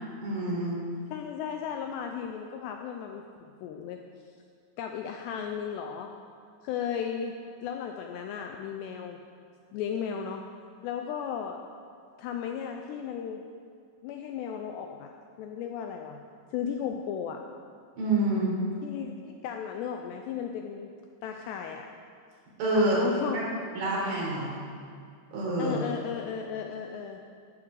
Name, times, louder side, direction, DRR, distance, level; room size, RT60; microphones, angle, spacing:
voice 1, 0.2-0.8 18.0-18.5 22.6-23.0 23.3-23.4 23.8-24.6 25.3-25.8, right 2 dB, 65° right, -6 dB, 6.2 m, -27 dB
voice 2, 1.1-4.0 4.8-6.1 6.6-9.2 9.7-10.4 10.8-11.6 12.2-13.4 14.0-15.1 15.4-17.4 18.8-20.9 21.2-21.9 22.7-23.5 25.6-27.2, left 8 dB, 80° left, 4 dB, 2.5 m, -35 dB
14.5 x 9.8 x 6.6 m, 2.3 s
omnidirectional pair, 5.5 m